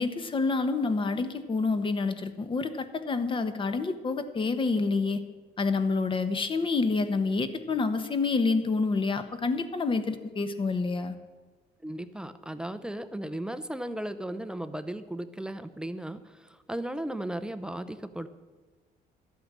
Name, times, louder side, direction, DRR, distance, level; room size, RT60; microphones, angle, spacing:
voice 1, 0.0-5.2 5.6-11.1, left 4 dB, 30° left, 9 dB, 1.1 m, -28 dB
voice 2, 11.8-18.3, right 1 dB, 5° right, 10 dB, 0.7 m, -36 dB
12.5 x 8.6 x 7.6 m, 1.3 s
cardioid pair, 110°, 17 cm